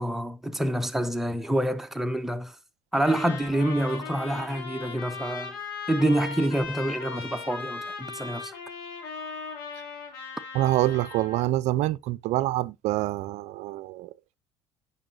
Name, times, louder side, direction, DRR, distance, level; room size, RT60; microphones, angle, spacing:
voice 1, 0.0-2.6 2.9-5.6 5.9-8.5, right 1 dB, 5° right, 1.0 m, -27 dB
Trumpet, 2.9-11.5, left 5 dB, 85° left, 2.7 m, -38 dB
voice 2, 10.5-14.1, right 16 dB, 65° right, 0.5 m, -26 dB
8.8 x 5.6 x 2.6 m
hypercardioid pair, 70°, 12 cm